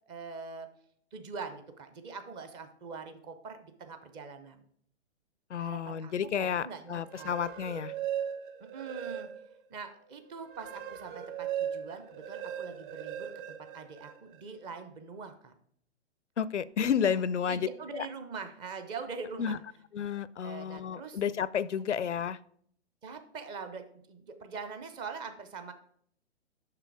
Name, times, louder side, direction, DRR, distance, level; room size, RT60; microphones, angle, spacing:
voice 1, 0.1-0.7 1.1-4.6 5.6-6.1 6.4-7.3 8.6-9.3 9.7-13.3 13.7-15.5 17.5-19.6 20.4-21.2 23.0-25.7, right 5 dB, 15° right, 0.5 m, -43 dB
voice 2, 5.5-7.9 16.4-18.1 19.4-19.6 19.9-22.4, left 8 dB, 85° left, 0.5 m, -31 dB
sound 1, 7.0-9.6 10.1-14.4, right 9 dB, 45° right, 0.8 m, -38 dB
6.7 x 6.0 x 4.7 m
figure-of-eight pair, 120°, 34 cm